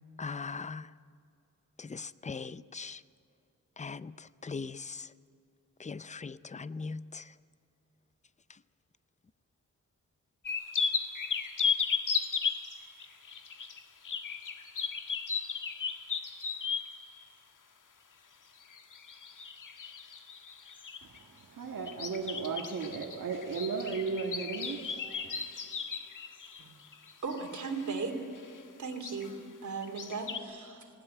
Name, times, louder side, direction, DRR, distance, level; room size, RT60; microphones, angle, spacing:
voice 1, 0.2-0.9 1.8-3.0 3.8-5.1 5.8-7.4 8.5-8.6, left 4 dB, 25° left, 16 dB, 0.5 m, -40 dB
sound 1, 10.4-17.0 18.6-21.2 21.9-28.0 28.3-28.6 28.9-29.3 29.8-30.4, left 6 dB, 75° left, 1.7 m, -35 dB
voice 2, 21.0-25.4, right 5 dB, 85° right, -1 dB, 1.8 m, -36 dB
voice 3, 27.2-28.1 28.8-30.9, right 4 dB, 65° right, 3 dB, 3.0 m, -37 dB
20.0 x 18.0 x 9.2 m, 2.5 s
wide cardioid pair, 125°, 32 cm